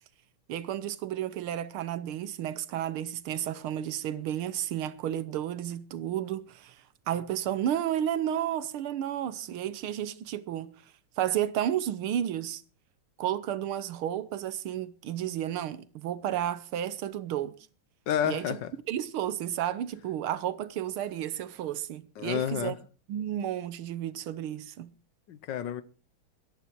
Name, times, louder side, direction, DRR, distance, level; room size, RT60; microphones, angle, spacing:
voice 1, 0.5-6.8 7.1-10.7 11.2-12.6 13.2-17.5 18.2-18.6 18.9-22.8 23.1-24.9, right 11 dB, 80° right, 1.8 m, -32 dB
voice 2, 18.1-18.7 22.2-22.8 25.3-25.8, left 9 dB, 65° left, 1.5 m, -30 dB
18.0 x 12.0 x 4.6 m
omnidirectional pair, 2.3 m